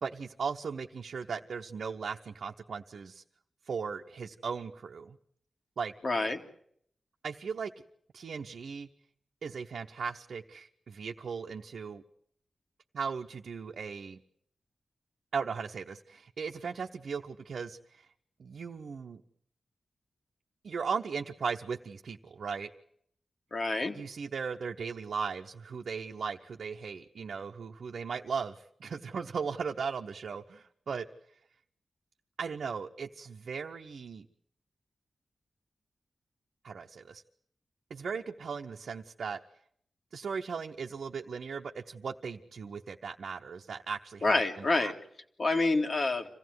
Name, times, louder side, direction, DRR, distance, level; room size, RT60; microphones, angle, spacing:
voice 1, 0.0-3.2 3.7-5.2 5.8-5.9 7.2-7.7 8.1-8.9 9.4-12.0 12.9-14.2 15.3-18.1 18.4-19.2 20.6-22.7 23.9-31.1 32.4-34.3 36.6-37.2 37.9-39.4 40.1-44.9, right 5 dB, 75° right, 1 dB, 0.9 m, -37 dB
voice 2, 6.0-6.4 23.5-24.0 44.2-44.9 45.4-46.3, left 2 dB, 60° left, 4 dB, 2.5 m, -27 dB
26.0 x 16.0 x 9.5 m, 0.68 s
cardioid pair, 40°, 0 cm